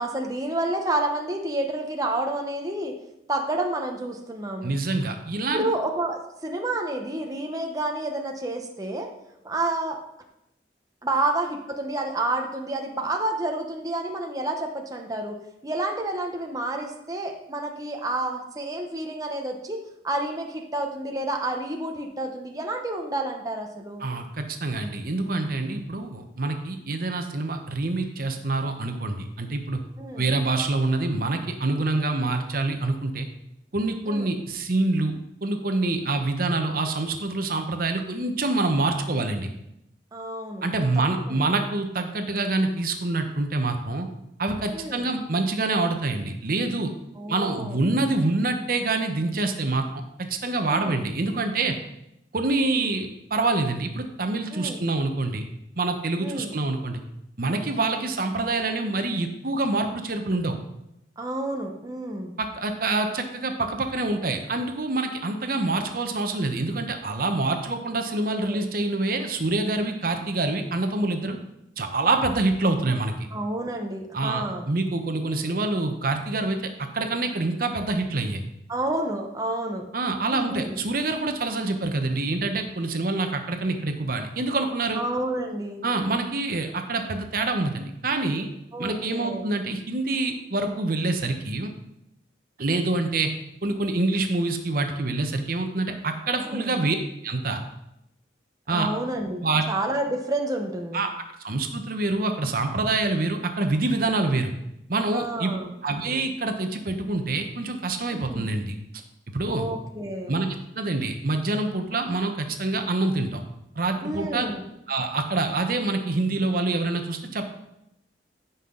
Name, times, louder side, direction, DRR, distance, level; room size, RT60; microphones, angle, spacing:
voice 1, 0.0-2.9 3.3-4.8 5.5-9.1 9.4-10.0 11.0-15.4 15.6-24.0 30.0-30.3 34.1-34.4 40.1-40.6 41.3-41.4 44.7-45.1 47.2-47.8 50.7-51.1 54.5-54.8 56.2-56.5 61.2-62.3 67.9-68.0 68.4-68.6 73.3-74.7 78.7-79.8 80.3-80.7 84.9-85.8 88.7-89.4 96.5-96.7 98.7-101.0 105.1-105.7 108.3-108.5 109.5-110.3 114.0-114.6, right 2 dB, 20° right, 2 dB, 0.9 m, -29 dB
voice 2, 4.6-5.7 24.0-29.8 30.2-33.3 33.7-35.1 35.4-39.5 40.6-44.1 44.4-46.9 47.3-49.9 50.2-51.7 52.3-55.5 55.8-57.0 57.4-60.6 62.4-71.4 71.8-73.1 74.1-78.4 79.9-85.0 85.8-88.5 88.8-91.7 92.6-93.3 93.6-97.0 97.2-97.6 98.7-98.9 99.4-99.6 100.9-101.1 101.4-104.5 104.9-105.5 105.8-108.7 109.3-109.7 110.3-113.4 113.8-114.5 114.9-117.4, right 2 dB, 55° right, 6 dB, 0.9 m, -26 dB
15.5 x 5.7 x 3.8 m, 0.85 s
head